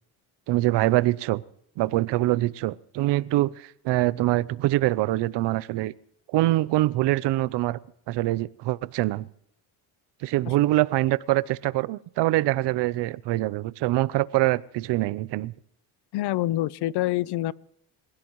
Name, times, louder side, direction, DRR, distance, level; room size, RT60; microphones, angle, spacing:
voice 1, 0.5-1.4 1.8-5.9 6.3-7.8 8.1-9.3 10.2-15.5, right 17 dB, 70° right, 0.8 m, -24 dB
voice 2, 16.1-17.5, left 15 dB, 65° left, 0.7 m, -26 dB
27.5 x 16.5 x 3.1 m
cardioid pair, 110°, 43 cm